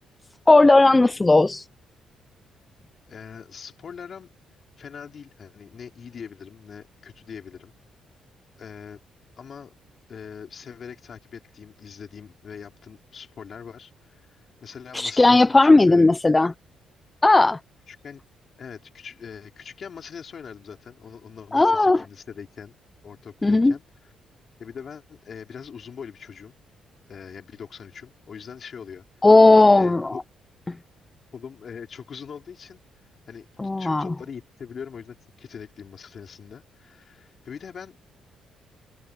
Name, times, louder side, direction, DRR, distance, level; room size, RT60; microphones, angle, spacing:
voice 1, 0.5-1.7 14.9-16.5 17.2-17.6 21.5-22.0 23.4-23.7 29.2-30.2 30.7-30.8 33.6-34.1, left 2 dB, 20° left, 0.7 m, -16 dB
voice 2, 3.1-4.3 4.8-7.7 8.6-9.0 9.4-9.7 10.1-16.1 17.9-18.2 18.6-22.8 23.0-23.8 24.6-26.6 27.1-29.3 29.7-30.2 31.3-32.8 33.3-33.5 33.8-38.0, left 7 dB, 50° left, 4.6 m, -42 dB
cardioid pair, 90°, 0 cm